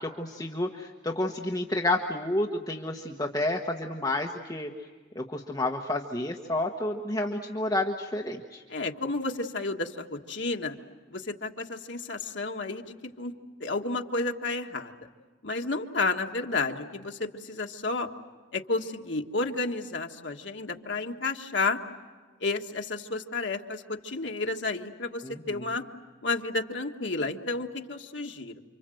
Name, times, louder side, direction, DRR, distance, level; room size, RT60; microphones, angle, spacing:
voice 1, 0.0-4.7 5.1-8.6 25.2-25.7, left 1 dB, 20° left, 1 dB, 1.3 m, -30 dB
voice 2, 8.7-10.7 11.1-13.3 13.6-14.9 15.4-18.1 18.5-21.8 22.4-25.8 26.2-28.6, left 3 dB, 65° left, 3 dB, 1.7 m, -31 dB
29.0 x 25.5 x 7.8 m, 1.5 s
head